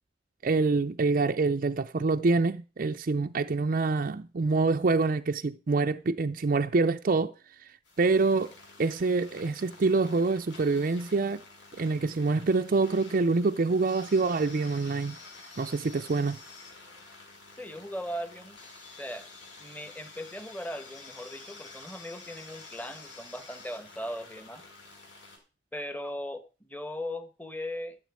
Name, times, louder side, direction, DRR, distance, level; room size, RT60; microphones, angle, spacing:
voice 1, 0.4-7.3 8.0-8.5 8.8-11.4 11.8-15.1 15.6-16.4, right 3 dB, 50° right, 0.5 m, -26 dB
sound 1, 7.8-25.4, left 3 dB, 85° left, 5.9 m, -49 dB
voice 2, 17.5-18.6 19.0-19.3 19.6-24.6 25.7-28.0, equal, 10° left, 1.1 m, -38 dB
13.5 x 7.6 x 4.7 m
head